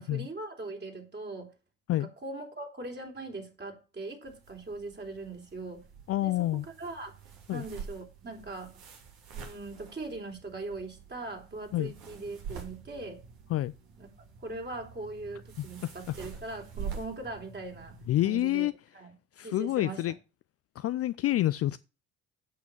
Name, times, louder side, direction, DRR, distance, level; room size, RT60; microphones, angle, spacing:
voice 1, 0.0-1.5 2.0-5.8 6.2-6.3 6.6-7.2 7.5-8.7 9.3-13.2 14.0-14.1 14.4-18.0 18.2-18.7 18.9-19.1 19.4-20.0, right 2 dB, 25° right, 3.4 m, -40 dB
sound 1, 4.2-18.3, right 6 dB, 65° right, 2.8 m, -46 dB
voice 2, 6.1-6.7 7.5-7.6 11.7-11.9 13.5-13.7 15.6-15.7 18.1-18.7 19.4-20.1 20.8-21.8, left 14 dB, 40° left, 0.4 m, -28 dB
8.5 x 6.1 x 7.0 m
hypercardioid pair, 55°, 39 cm